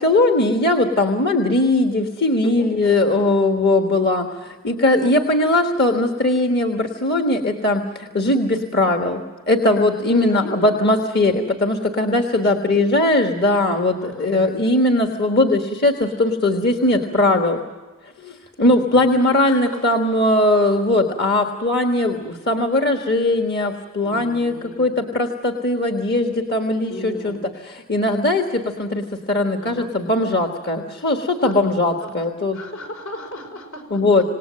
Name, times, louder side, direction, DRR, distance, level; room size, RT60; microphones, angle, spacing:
voice 1, 0.0-17.6 18.2-27.4 27.7-32.6 33.9-34.2, left 2 dB, 45° left, 3 dB, 1.5 m, -19 dB
voice 2, 10.1-10.8 12.1-12.7 14.0-14.4 16.8-17.6 18.9-19.1 19.5-20.0 24.0-25.0 26.9-27.5 29.6-29.9 31.4-34.0, equal, 75° left, 4 dB, 5.4 m, -36 dB
27.0 x 18.5 x 7.5 m, 1.3 s
head